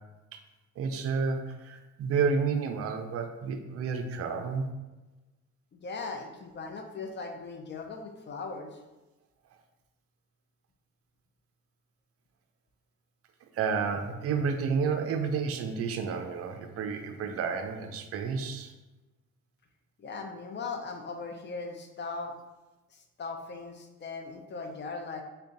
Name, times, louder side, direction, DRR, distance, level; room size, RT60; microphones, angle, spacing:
voice 1, 0.8-1.4 1.6-4.6 13.5-18.7, right 5 dB, 50° right, 6 dB, 0.5 m, -30 dB
voice 2, 5.7-8.8 20.0-22.3 22.9-25.2, left 4 dB, 35° left, 4 dB, 0.5 m, -39 dB
3.6 x 2.2 x 3.9 m, 1.1 s
cardioid pair, 90°, 30 cm